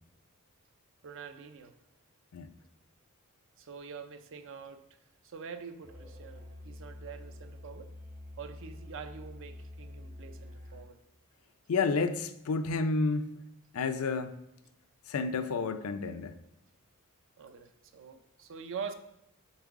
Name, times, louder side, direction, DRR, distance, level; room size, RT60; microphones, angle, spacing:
voice 1, 1.0-1.7 3.6-4.8 5.2-7.9 8.4-11.0 17.4-18.9, right 6 dB, 60° right, 9 dB, 0.5 m, -45 dB
Musical instrument, 5.8-11.0, left 1 dB, 45° right, 1.1 m, -47 dB
voice 2, 11.7-13.3 13.7-14.3 15.1-16.4, left 4 dB, 70° left, 10 dB, 0.5 m, -30 dB
7.2 x 3.8 x 3.6 m, 0.83 s
head